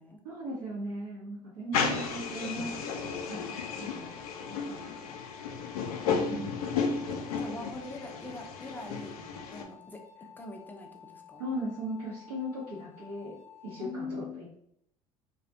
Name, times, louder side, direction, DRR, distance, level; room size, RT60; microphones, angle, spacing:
voice 1, 0.2-2.7 3.3-5.1 6.2-6.5 11.4-13.4 13.6-14.5, right 1 dB, 75° right, -6 dB, 0.7 m, -38 dB
sound 1, 1.7-9.6, left 5 dB, 70° left, 0.4 m, -33 dB
sound 2, 2.7-13.9, left 9 dB, 15° right, 0.8 m, -53 dB
voice 2, 6.0-6.7 7.1-9.2 9.5-10.0 10.4-11.4 13.8-14.4, left 2 dB, 10° left, 2 dB, 0.4 m, -42 dB
2.3 x 2.1 x 2.6 m, 0.71 s
figure-of-eight pair, 65°, 19 cm